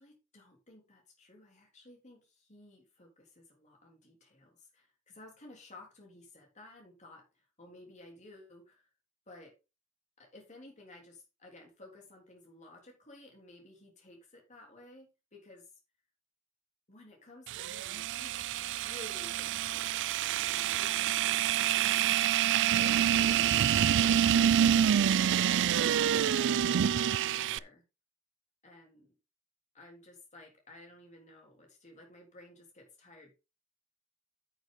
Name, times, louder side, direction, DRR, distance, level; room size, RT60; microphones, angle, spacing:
voice 1, 0.0-8.8 9.3-9.5 10.2-15.7 16.9-22.4 22.8-24.3 25.0-25.3 25.7-27.8 28.6-29.2 29.7-33.3, left 1 dB, 35° left, 3.4 m, -55 dB
sound 1, 17.5-27.6, right 10 dB, 55° right, 0.4 m, -27 dB
9.0 x 6.9 x 3.8 m
head